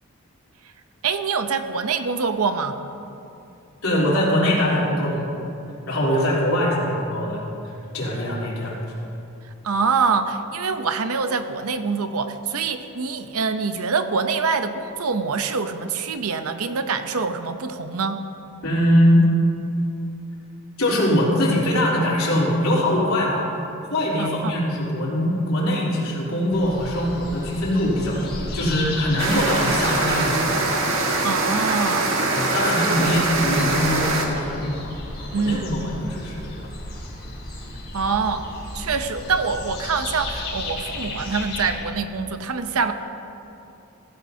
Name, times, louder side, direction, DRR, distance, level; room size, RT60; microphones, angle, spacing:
voice 1, 1.0-2.8 9.4-18.2 24.2-24.5 31.2-32.3 32.9-33.2 35.3-36.0 37.9-38.5 38.7-42.9, right 5 dB, 85° right, 9 dB, 0.7 m, -25 dB
voice 2, 3.8-5.4 5.9-8.7 18.6-19.3 20.8-23.4 23.9-30.7 32.3-34.9 35.2-35.8 36.0-36.7, left 1 dB, 80° left, -6 dB, 3.4 m, -22 dB
sound 1, 26.5-32.0 32.5-32.6 32.8-41.8, left 2 dB, 45° left, 3.4 m, -35 dB
sound 2, 29.2-34.3, right 2 dB, 65° right, 1.5 m, -23 dB
16.0 x 15.5 x 2.8 m, 2.8 s
head